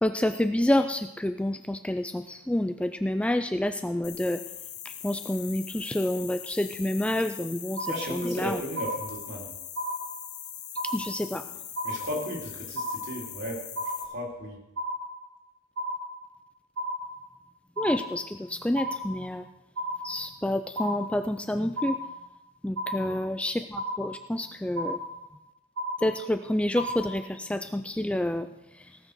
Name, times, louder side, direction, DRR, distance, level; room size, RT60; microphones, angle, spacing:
voice 1, 0.0-4.4 4.8-8.6 10.9-11.4 17.8-19.5 20.0-22.0 22.6-25.0 26.0-28.5 28.7-28.9, left 1 dB, 5° left, 8 dB, 0.3 m, -28 dB
sound 1, 4.0-14.0, left 10 dB, 55° left, 1.7 m, -41 dB
sound 2, 7.8-8.4 8.8-9.4 9.8-10.4 10.8-11.4 11.8-12.4 12.8-13.4 13.8-14.4 14.8-15.4 15.8-16.4 16.8-17.4 17.8-18.4 18.8-19.4 19.8-20.4 20.8-21.4 21.8-22.4 22.8-23.4 23.8-24.4 24.8-25.4 25.8-26.4 26.8-27.4, equal, 85° right, 1.5 m, -34 dB
voice 2, 7.9-9.5 11.8-13.6 14.1-14.6 22.9-23.2, equal, 55° right, -1 dB, 3.6 m, -35 dB
18.0 x 6.3 x 6.5 m, 0.92 s
head